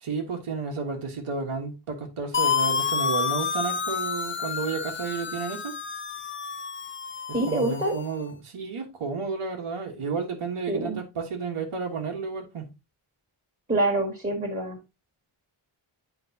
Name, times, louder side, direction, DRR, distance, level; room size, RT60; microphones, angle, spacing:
voice 1, 0.0-5.7 7.5-12.7, right 5 dB, 90° right, 1.5 m, -32 dB
sound 1, 2.3-8.1, left 6 dB, 25° left, 0.4 m, -29 dB
voice 2, 7.3-8.0 10.7-11.0 13.7-14.8, right 2 dB, 15° right, 1.7 m, -26 dB
8.3 x 4.9 x 2.8 m
wide cardioid pair, 110°, 50 cm